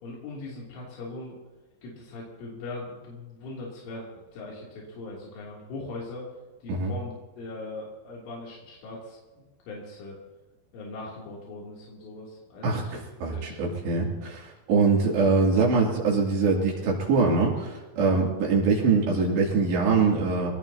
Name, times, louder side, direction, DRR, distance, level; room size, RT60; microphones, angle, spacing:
voice 1, 0.0-1.4 1.8-6.3 6.6-10.2 10.7-13.0 13.3-13.7 18.0-18.2, left 2 dB, 85° left, -5 dB, 5.6 m, -40 dB
voice 2, 13.2-20.5, right 4 dB, 70° right, -4 dB, 5.0 m, -23 dB
25.0 x 18.0 x 2.9 m, 1.2 s
omnidirectional pair, 5.4 m